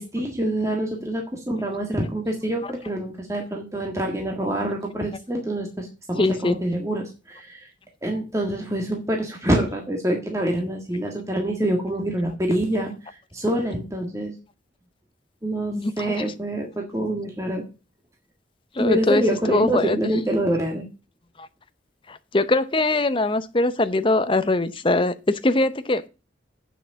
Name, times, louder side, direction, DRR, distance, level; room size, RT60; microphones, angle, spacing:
voice 1, 0.0-7.7 8.0-14.3 15.4-17.6 18.8-20.8, right 1 dB, 15° right, 1.6 m, -26 dB
voice 2, 6.2-6.6 15.7-16.3 18.7-20.0 21.4-21.5 22.1-26.0, left 2 dB, 25° left, 0.7 m, -22 dB
8.3 x 6.0 x 6.9 m
head